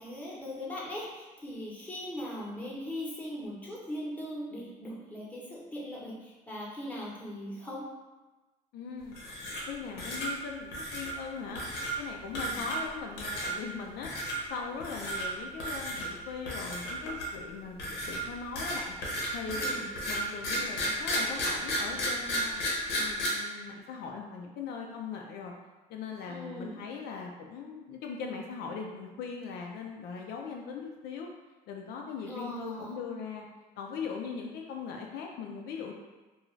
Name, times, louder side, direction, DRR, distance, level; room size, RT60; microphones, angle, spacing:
voice 1, 0.0-7.9 12.3-12.6 19.5-19.8 26.3-26.8 32.2-33.0, left 1 dB, 10° left, -6 dB, 0.8 m, -39 dB
voice 2, 8.7-9.2 9.7-19.0 19.3-19.8 20.1-22.6 23.0-25.5 25.9-31.3 31.7-33.5 33.8-35.9, left 5 dB, 75° left, 1 dB, 0.4 m, -40 dB
Razguñando madera rápido s, 9.1-9.7 10.0-10.3 10.7-11.1 11.6-11.9 12.3-12.9 13.2-13.5 14.0-14.4 14.8-15.3 15.6-16.1 16.5-17.4 17.8-23.3, equal, 90° left, 0.8 m, -33 dB
2.4 x 2.3 x 3.1 m, 1.2 s
cardioid pair, 110°, 17 cm